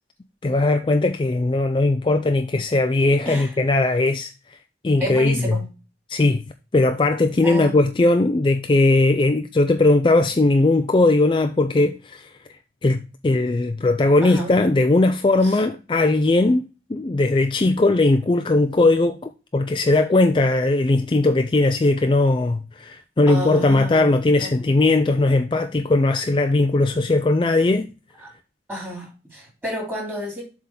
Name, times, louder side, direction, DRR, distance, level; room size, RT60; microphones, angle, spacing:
voice 1, 0.4-4.6 4.8-5.6 6.1-6.4 6.7-16.6 16.9-27.9, left 2 dB, 25° left, 0.4 m, -19 dB
voice 2, 3.2-3.6 5.0-5.6 7.4-7.8 14.2-14.5 15.4-15.6 17.1-17.2 23.3-24.5 28.2-28.3 28.7-30.4, equal, 10° right, 3.1 m, -31 dB
7.5 x 3.6 x 5.8 m
head